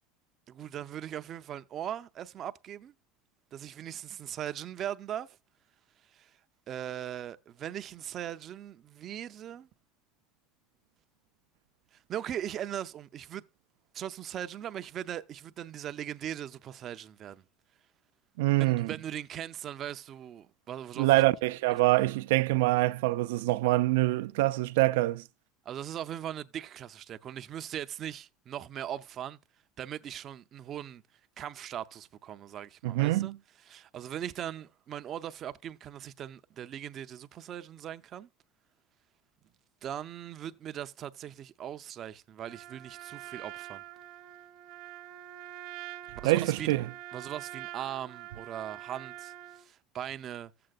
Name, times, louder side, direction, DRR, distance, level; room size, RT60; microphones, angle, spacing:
voice 1, 0.5-2.9 3.5-5.4 6.1-6.3 6.7-9.7 11.9-13.4 13.9-17.4 18.6-21.2 25.7-29.4 29.8-31.0 31.4-33.3 33.7-38.3 39.8-43.8 46.2-46.8 47.1-50.5, right 10 dB, 35° right, 0.5 m, -39 dB
voice 2, 18.4-18.9 21.0-25.2 32.8-33.3 46.2-46.9, right 18 dB, 85° right, 0.5 m, -25 dB
Trumpet, 42.4-49.7, right 14 dB, 65° right, 1.0 m, -45 dB
15.0 x 7.7 x 2.4 m
supercardioid pair, 140°, 0 cm